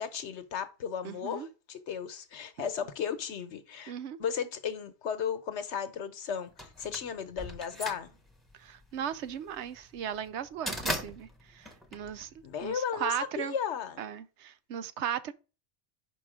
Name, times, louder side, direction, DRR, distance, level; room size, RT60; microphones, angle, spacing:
voice 1, 0.0-3.9 4.2-8.2 12.4-14.0, left 7 dB, 85° left, 1.2 m, -35 dB
voice 2, 1.0-1.5 3.9-4.2 8.6-13.6 14.0-15.3, right 9 dB, 85° right, 0.9 m, -37 dB
sound 1, 6.6-12.7, equal, ahead, 1.0 m, -38 dB
5.5 x 4.8 x 5.0 m
omnidirectional pair, 1.1 m